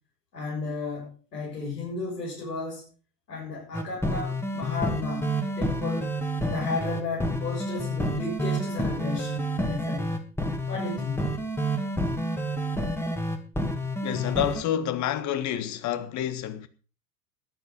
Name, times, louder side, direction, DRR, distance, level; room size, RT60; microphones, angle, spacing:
voice 1, 0.3-2.9 3.3-5.3 5.5-6.1 6.5-10.2 10.7-11.3, left 4 dB, 75° left, 7.5 m, -34 dB
sound 1, 3.7-14.6, equal, 5° left, 2.2 m, -29 dB
voice 2, 14.0-16.7, left 10 dB, 35° left, 1.6 m, -28 dB
14.0 x 10.5 x 5.4 m
figure-of-eight pair, 85°, 49 cm